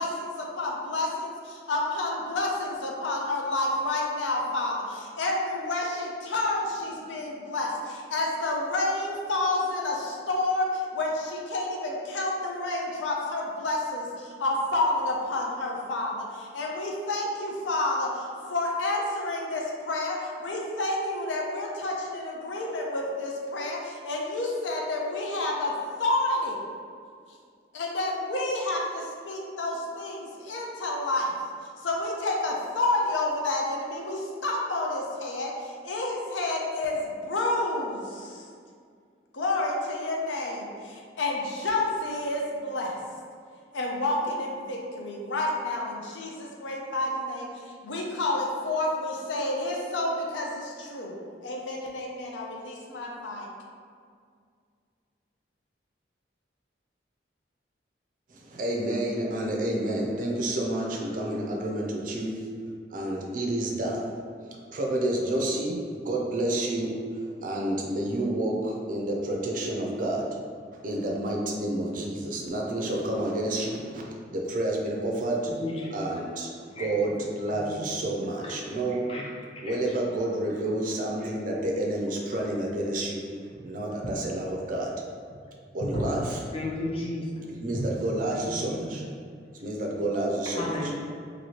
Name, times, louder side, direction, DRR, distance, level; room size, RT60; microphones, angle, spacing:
voice 1, 0.0-25.7 26.0-26.6 27.7-31.3 31.8-38.4 39.3-43.0 43.7-47.5 47.8-51.2 51.4-53.5, left 2 dB, 90° left, -1 dB, 0.5 m, -29 dB
voice 2, 58.3-62.4 62.9-64.1 64.4-67.0 67.4-70.3 70.8-75.5 75.9-76.5 76.8-79.0 79.6-83.2 83.6-84.9 85.7-86.4 87.6-89.0 89.6-90.9, right 1 dB, 45° right, -1 dB, 0.4 m, -29 dB
voice 3, 86.5-87.3 90.5-90.9, left 1 dB, 30° left, -3 dB, 0.5 m, -33 dB
3.0 x 2.6 x 2.9 m, 2.1 s
head